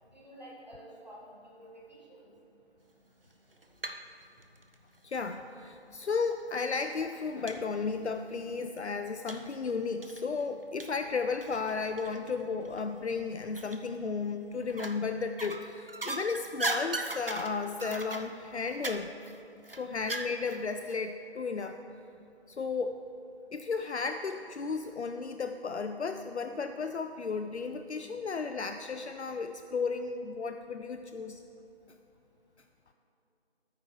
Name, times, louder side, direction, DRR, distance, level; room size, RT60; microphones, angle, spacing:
voice 1, 0.0-2.3, right 1 dB, 40° right, -5 dB, 1.8 m, -50 dB
sound 1, 3.3-4.1 4.4-5.4 6.2-6.3 6.7-6.8 7.5-7.6 8.0-8.1 9.3-9.5 10.0-12.3 12.6-12.8 13.5-14.1 14.6-15.0 15.4-20.6 20.9-21.0, right 2 dB, 55° right, 0.6 m, -38 dB
voice 2, 5.0-19.1 19.8-21.8 22.5-23.0 23.5-31.4, left 4 dB, 80° left, 7 dB, 0.5 m, -34 dB
11.0 x 9.3 x 3.3 m, 2.8 s
figure-of-eight pair, 175°, 33 cm